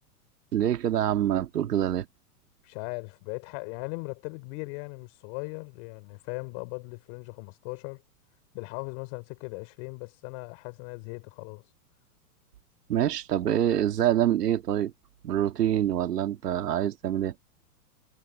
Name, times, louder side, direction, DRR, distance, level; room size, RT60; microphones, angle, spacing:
voice 1, 0.5-2.1 12.9-14.9 15.2-17.3, right 11 dB, 85° right, 2.5 m, -25 dB
voice 2, 2.6-8.0 8.5-11.6, left 35 dB, 45° left, 4.9 m, -38 dB
hypercardioid pair, 135°, 47 cm